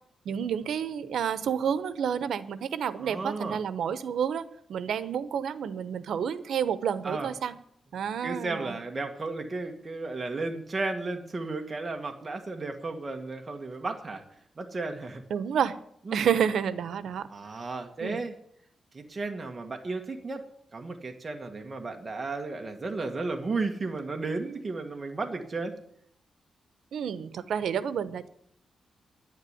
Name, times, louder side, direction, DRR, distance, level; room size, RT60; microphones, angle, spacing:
voice 1, 0.2-7.6 7.9-8.8 15.3-15.8 16.1-17.3 18.0-18.2 26.9-28.3, right 8 dB, 90° right, 14 dB, 1.0 m, -30 dB
voice 2, 3.0-3.6 7.0-7.3 8.2-14.2 14.6-15.2 16.1-16.3 17.3-18.3 18.9-20.4 20.7-25.8, right 3 dB, 30° right, 4 dB, 1.6 m, -34 dB
10.5 x 10.0 x 9.5 m, 0.70 s
wide cardioid pair, 135°, 0 cm